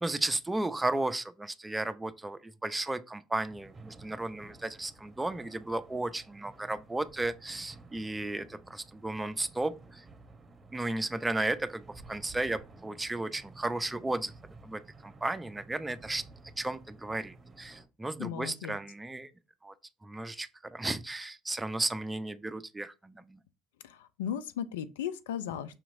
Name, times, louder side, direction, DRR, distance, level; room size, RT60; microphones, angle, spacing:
voice 1, 0.0-10.0 10.7-14.3 14.6-16.2 16.6-19.3 19.6-19.7 20.0-23.4, right 2 dB, 15° right, 0.5 m, -34 dB
sound 1, 3.5-17.8, right 3 dB, 30° right, 0.9 m, -54 dB
voice 2, 18.2-18.8 23.8-25.8, left 9 dB, 85° left, 0.3 m, -36 dB
5.6 x 2.9 x 2.6 m
hypercardioid pair, 60°, 0 cm